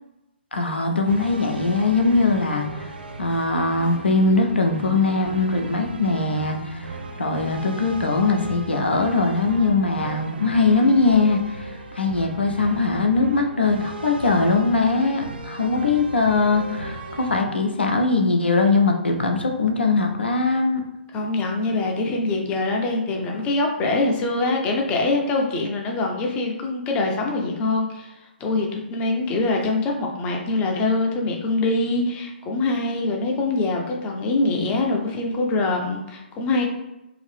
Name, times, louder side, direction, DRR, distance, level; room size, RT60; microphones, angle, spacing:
voice 1, 0.5-2.9 3.2-20.8, left 3 dB, 75° left, 2 dB, 0.6 m, -21 dB
sound 1, 1.0-17.4, right 2 dB, 65° right, 0.4 m, -36 dB
voice 2, 21.1-28.1 28.4-36.6, left 2 dB, 20° left, 0 dB, 0.6 m, -24 dB
2.8 x 2.5 x 3.3 m, 0.94 s
figure-of-eight pair, 125°, 6 cm